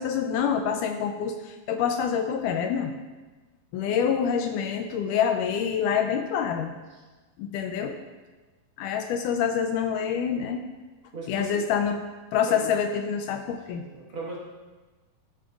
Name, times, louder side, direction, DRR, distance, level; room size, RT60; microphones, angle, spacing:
voice 1, 0.0-2.9 3.7-6.7 7.4-8.0 8.8-10.6 11.3-12.0 12.3-13.8, left 7 dB, 80° left, 6 dB, 2.0 m, -26 dB
voice 2, 11.1-11.6 12.5-12.7 13.8-14.4, right 2 dB, 45° right, -5 dB, 1.9 m, -37 dB
14.0 x 9.7 x 2.4 m, 1.3 s
omnidirectional pair, 3.9 m